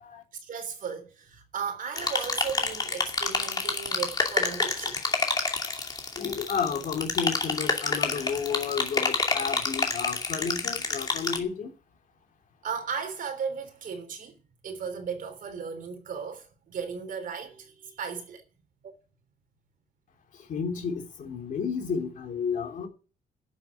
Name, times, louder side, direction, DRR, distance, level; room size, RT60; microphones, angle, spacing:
voice 1, 0.4-5.0 12.6-18.4, right 6 dB, 55° right, 3.5 m, -36 dB
sound 1, 2.0-11.4, left 4 dB, 25° left, 2.5 m, -28 dB
voice 2, 6.2-11.7 20.5-22.9, left 6 dB, 55° left, 3.1 m, -31 dB
11.5 x 7.5 x 9.4 m
cardioid pair, 155°, 16 cm